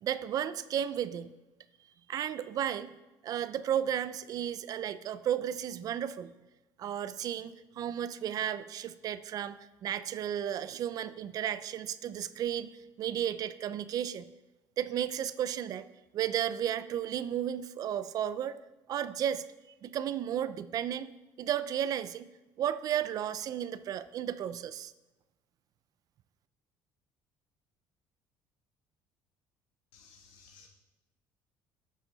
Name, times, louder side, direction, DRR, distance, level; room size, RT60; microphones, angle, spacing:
voice 1, 0.0-1.3 2.1-2.9 3.2-6.3 6.8-12.7 13.0-14.2 14.8-15.9 16.1-18.6 18.9-19.4 19.8-21.1 21.4-22.3 22.6-24.9, right 10 dB, 50° right, 14 dB, 0.5 m, -33 dB
voice 2, 29.9-30.7, left 5 dB, 80° left, 1 dB, 2.2 m, -57 dB
12.0 x 7.4 x 4.0 m, 1.1 s
cardioid pair, 125°, 8 cm